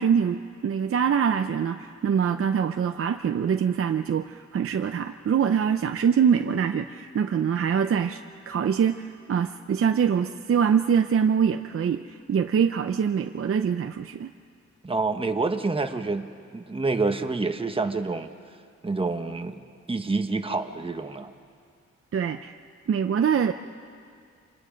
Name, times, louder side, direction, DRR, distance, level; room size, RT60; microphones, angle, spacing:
voice 1, 0.0-8.2 8.5-14.3 22.1-22.5 22.9-23.5, right 7 dB, 50° right, 7 dB, 0.7 m, -24 dB
voice 2, 14.8-16.3 16.5-18.3 18.8-19.6 19.9-21.3, right 3 dB, 20° right, 6 dB, 1.2 m, -27 dB
29.0 x 25.5 x 5.2 m, 2.3 s
cardioid pair, 100°, 29 cm